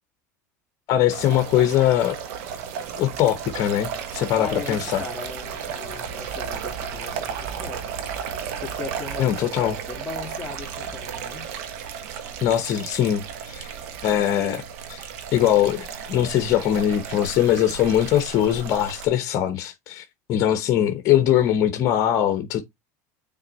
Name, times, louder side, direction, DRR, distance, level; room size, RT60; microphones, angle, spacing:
voice 1, 0.9-2.2 3.0-5.0 9.2-9.7 12.4-13.7 14.0-14.6 14.9-15.0 15.3-20.0 20.3-22.6, left 11 dB, 50° left, 1.0 m, -21 dB
sound 1, 1.1-19.1, right 7 dB, 75° right, 1.3 m, -34 dB
voice 2, 4.4-7.8 8.5-11.5, left 3 dB, 10° left, 2.4 m, -37 dB
6.4 x 3.9 x 4.1 m
supercardioid pair, 110°, 8 cm